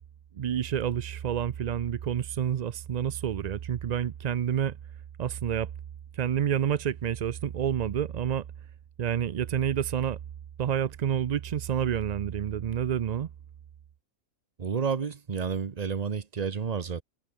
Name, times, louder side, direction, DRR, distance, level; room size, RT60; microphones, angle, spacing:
voice 1, 0.3-4.8 5.2-5.7 6.1-8.4 9.0-10.2 10.6-13.3, right 9 dB, 65° right, 0.4 m, -28 dB
voice 2, 14.6-17.0, right 6 dB, 35° right, 0.8 m, -30 dB
omnidirectional pair, 1.3 m